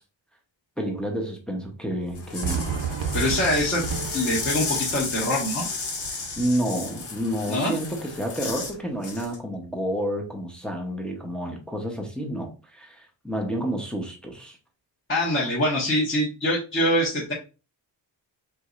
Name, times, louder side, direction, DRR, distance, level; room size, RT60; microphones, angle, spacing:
voice 1, 0.8-2.6 6.4-14.6, equal, ahead, 0.7 m, -30 dB
sound 1, 2.1-8.8 9.0-9.4, left 4 dB, 80° left, 1.9 m, -33 dB
Fireworks, 2.4-7.5, right 6 dB, 70° right, 0.8 m, -33 dB
voice 2, 3.1-3.8 4.1-5.7 7.5-7.8 15.1-17.3, left 1 dB, 25° left, 1.2 m, -24 dB
4.7 x 4.0 x 2.4 m
wide cardioid pair, 165°, 47 cm